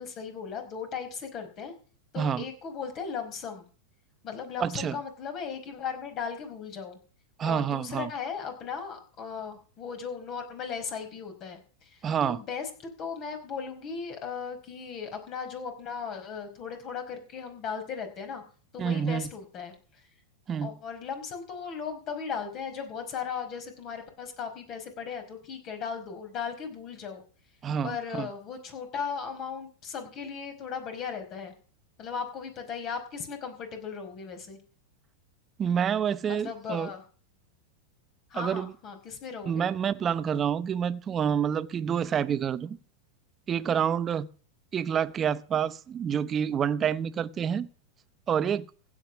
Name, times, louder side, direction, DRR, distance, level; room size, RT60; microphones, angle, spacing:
voice 1, 0.0-1.7 2.1-3.6 4.2-7.0 7.4-12.7 13.0-18.4 18.7-19.7 20.6-27.2 27.8-31.5 32.0-34.6 36.3-37.0 38.3-39.7, left 6 dB, 40° left, 5.0 m, -37 dB
voice 2, 4.6-5.0 7.4-8.1 12.0-12.4 18.8-19.3 20.5-20.7 27.6-28.3 35.6-36.9 38.3-38.7 39.4-42.8 43.5-44.3 44.7-47.7 48.3-48.7, right 8 dB, 25° right, 0.8 m, -28 dB
16.0 x 9.0 x 6.1 m
hypercardioid pair, 120°, 0 cm